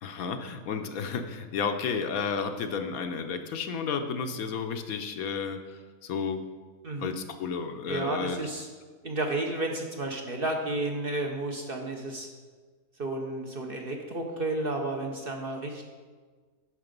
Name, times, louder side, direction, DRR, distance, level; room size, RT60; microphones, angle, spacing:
voice 1, 0.0-6.4 7.0-8.4, left 5 dB, 70° left, 6 dB, 1.1 m, -32 dB
voice 2, 6.8-7.1 7.9-8.7 9.0-12.3 13.0-15.9, right 2 dB, 45° right, 2 dB, 1.0 m, -32 dB
9.7 x 6.4 x 5.2 m, 1.5 s
omnidirectional pair, 1.6 m